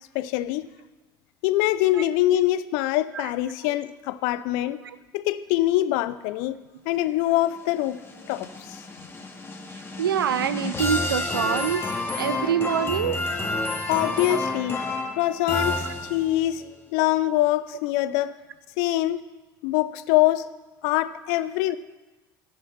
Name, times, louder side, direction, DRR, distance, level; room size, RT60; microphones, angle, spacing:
voice 1, 0.1-0.7 1.4-4.8 5.1-6.6 6.9-8.0 8.3-8.8 13.9-14.8 15.2-18.4 18.8-19.2 19.6-20.4 20.8-21.8, left 15 dB, 65° left, 0.6 m, -24 dB
voice 2, 1.9-2.4 3.1-3.3 3.6-3.8 4.8-5.0 9.7-11.8 12.1-13.2 14.3-14.4, right 8 dB, 85° right, 0.4 m, -26 dB
sound 1, 7.6-16.5, left 2 dB, 20° left, 1.9 m, -30 dB
12.0 x 10.5 x 5.8 m
hypercardioid pair, 65°, 12 cm